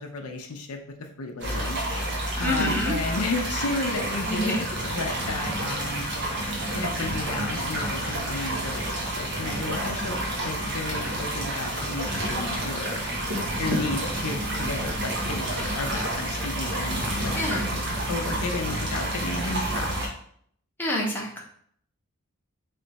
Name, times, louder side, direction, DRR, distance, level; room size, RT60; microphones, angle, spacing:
voice 1, 0.0-1.8 2.1-6.1 6.7-13.0 13.6-17.7 18.1-19.9, left 3 dB, 85° left, 4 dB, 0.6 m, -33 dB
sound 1, 1.4-20.1, right 1 dB, 55° right, 1.2 m, -29 dB
voice 2, 2.4-2.9 4.2-4.5 17.3-17.7 20.8-21.4, left 1 dB, 10° left, -3 dB, 0.9 m, -27 dB
3.7 x 3.3 x 4.0 m, 0.64 s
head